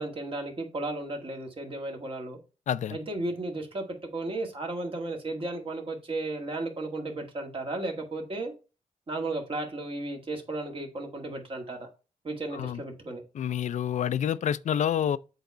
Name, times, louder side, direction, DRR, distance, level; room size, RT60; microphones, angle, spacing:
voice 1, 0.0-2.4 2.9-3.9 4.1-8.5 9.1-11.9 12.2-13.2, right 2 dB, 40° right, 1.9 m, -34 dB
voice 2, 2.7-3.0 12.5-12.8 13.4-15.2, left 9 dB, 65° left, 0.4 m, -28 dB
7.8 x 3.5 x 4.1 m
cardioid pair, 100°, 13 cm